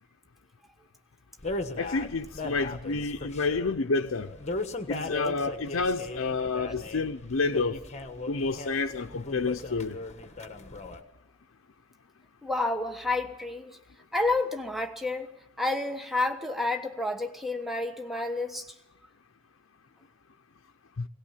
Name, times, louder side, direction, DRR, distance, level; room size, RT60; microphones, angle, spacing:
sound 1, 1.4-11.0, left 2 dB, 35° left, 1.3 m, -37 dB
voice 1, 1.8-4.3 4.9-7.8 8.3-10.0 21.0-21.1, left 3 dB, 75° left, 0.7 m, -29 dB
voice 2, 12.4-13.8 14.1-15.3 15.6-18.7, left 2 dB, ahead, 1.3 m, -30 dB
20.5 x 18.0 x 7.3 m
head